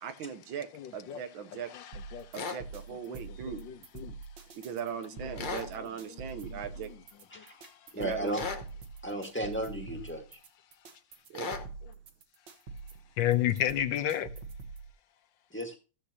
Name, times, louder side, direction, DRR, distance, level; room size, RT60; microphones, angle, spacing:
voice 1, 0.0-0.7 0.9-1.7 2.3-3.6 4.6-6.9 8.0-8.3 11.3-11.6, right 7 dB, 80° right, 1.7 m, -39 dB
voice 2, 0.7-1.2 1.7-2.3 3.1-3.2 3.4-4.1 5.3-5.6 6.1-6.6 7.4-7.5 13.2-14.3, left 12 dB, 75° left, 1.4 m, -32 dB
sound 1, 1.9-14.9, right 4 dB, 65° right, 2.0 m, -45 dB
sound 2, 2.3-2.6 5.4-5.7 8.3-8.7 11.3-11.7, left 4 dB, 40° left, 0.7 m, -36 dB
voice 3, 7.9-8.5 9.0-10.2 15.5-15.7, right 1 dB, 5° left, 1.4 m, -34 dB
14.5 x 8.1 x 2.9 m
omnidirectional pair, 2.1 m